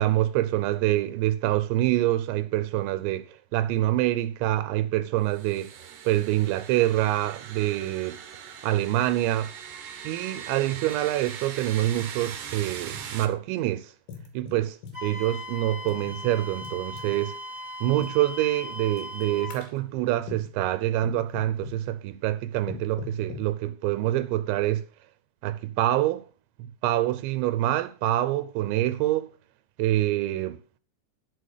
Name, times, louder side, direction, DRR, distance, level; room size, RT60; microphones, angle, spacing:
voice 1, 0.0-5.7 6.1-8.2 8.6-9.5 10.0-13.9 14.3-17.4 17.8-24.8 25.4-26.2 26.8-29.3 29.8-30.6, right 14 dB, 85° right, 2.9 m, -26 dB
sound 1, 5.3-13.3, right 8 dB, 65° right, 2.0 m, -40 dB
sound 2, 10.9-11.0 11.3-11.4 12.2-13.4 14.1-15.0 15.8-17.2 18.0-18.2 19.0-19.2 19.5-19.8 20.3-20.6 21.0-21.8 22.7-23.5, left 5 dB, 90° left, 4.4 m, -41 dB
Wind instrument woodwind instrument, 14.9-19.6, left 1 dB, 15° right, 2.8 m, -38 dB
11.0 x 6.5 x 6.4 m
omnidirectional pair, 5.2 m